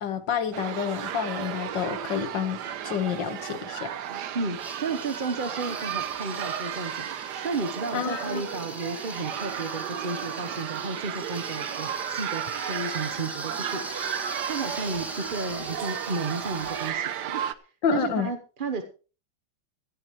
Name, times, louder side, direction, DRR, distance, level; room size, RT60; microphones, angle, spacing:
voice 1, 0.0-2.6 2.8-3.9 7.9-8.4 17.8-18.3, left 7 dB, 75° left, 9 dB, 2.1 m, -28 dB
sound 1, 0.5-17.5, right 10 dB, 70° right, 1.4 m, -34 dB
voice 2, 4.1-13.8 14.5-17.4 17.9-18.8, right 3 dB, 35° right, 6 dB, 1.0 m, -33 dB
sound 2, 4.6-16.9, equal, ahead, 3.3 m, -41 dB
17.0 x 14.0 x 3.2 m, 0.36 s
omnidirectional pair, 2.0 m